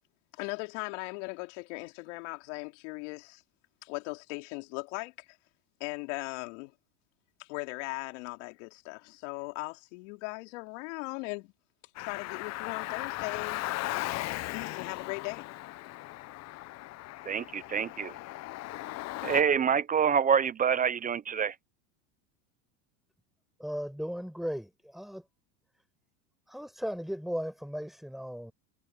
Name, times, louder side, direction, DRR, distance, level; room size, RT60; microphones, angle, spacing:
voice 1, 0.3-3.4 3.8-5.4 5.8-6.7 7.4-11.5 12.0-13.6 14.5-15.5, left 27 dB, 70° left, 3.3 m, -38 dB
Car, 11.9-19.4, left 17 dB, 45° left, 1.0 m, -37 dB
voice 2, 17.3-18.1 19.2-21.5, right 7 dB, 20° right, 0.7 m, -26 dB
voice 3, 23.6-25.2 26.5-28.5, equal, ahead, 5.2 m, -36 dB
supercardioid pair, 115°, 38 cm